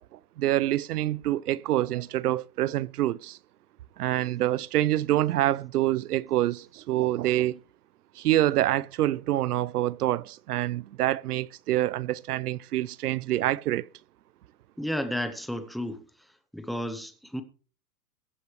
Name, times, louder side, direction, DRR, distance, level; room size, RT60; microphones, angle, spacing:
voice 1, 0.4-3.4 4.0-7.6 8.2-13.9, right 14 dB, 85° right, 0.7 m, -26 dB
voice 2, 14.8-16.0 16.5-17.4, equal, ahead, 0.8 m, -32 dB
22.0 x 8.1 x 3.2 m
supercardioid pair, 155°, 45 cm